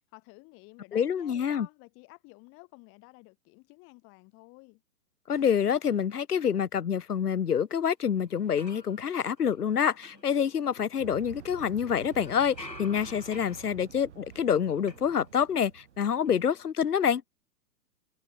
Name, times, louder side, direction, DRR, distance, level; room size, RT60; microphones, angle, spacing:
voice 1, 0.0-4.8, left 28 dB, 25° left, 3.8 m, -53 dB
voice 2, 0.9-1.7 5.3-17.2, left 8 dB, 65° left, 1.0 m, -27 dB
sound 1, 8.3-11.4 11.8-15.7 16.0-16.7, left 2 dB, 85° left, 2.7 m, -50 dB
sound 2, 11.0-16.4, right 10 dB, 45° right, 1.3 m, -49 dB
figure-of-eight pair, 120°, 49 cm